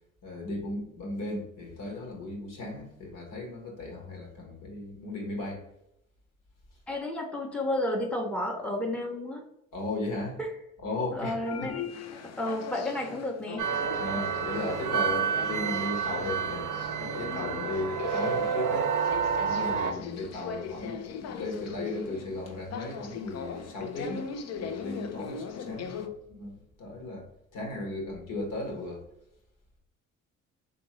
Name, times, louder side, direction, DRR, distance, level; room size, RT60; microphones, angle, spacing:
voice 1, 0.2-5.6 9.7-10.4 10.8-11.3 11.6-11.7 14.0-18.9 19.4-24.3 24.6-27.3 27.5-29.0, left 2 dB, 70° left, 0 dB, 1.4 m, -36 dB
voice 2, 6.9-9.4 10.4-10.5 11.1-13.6 25.6-26.0, left 1 dB, 5° left, 1 dB, 0.8 m, -32 dB
sound 1, 11.4-26.1, left 6 dB, 50° left, 0.5 m, -39 dB
sound 2, 13.6-19.9, right 7 dB, 65° right, 0.6 m, -29 dB
3.6 x 2.7 x 3.1 m, 0.82 s
supercardioid pair, 55°, 33 cm